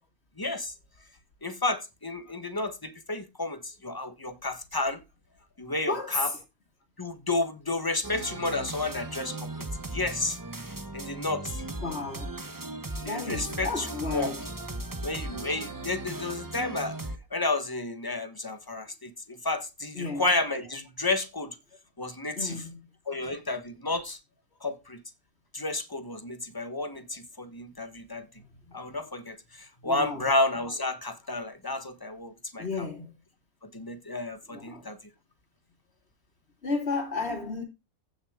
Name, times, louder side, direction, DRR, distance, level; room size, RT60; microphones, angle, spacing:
voice 1, 0.4-0.7 1.4-5.0 5.6-6.3 7.0-10.4 10.9-11.6 13.0-13.9 14.1-14.4 15.0-17.0 17.3-21.6 22.0-22.6 23.1-24.2 24.6-25.0 25.5-28.3 28.7-32.9 33.7-35.0, left 2 dB, 15° left, 1.2 m, -31 dB
voice 2, 5.9-6.4 11.8-12.3 13.0-14.5 19.9-20.3 22.4-22.8 28.4-28.5 29.8-30.3 32.6-33.1 34.5-34.9 36.6-37.6, left 3 dB, 45° left, 2.8 m, -33 dB
sound 1, 8.0-17.2, right 2 dB, 15° right, 0.9 m, -37 dB
15.5 x 6.3 x 3.7 m
omnidirectional pair, 1.5 m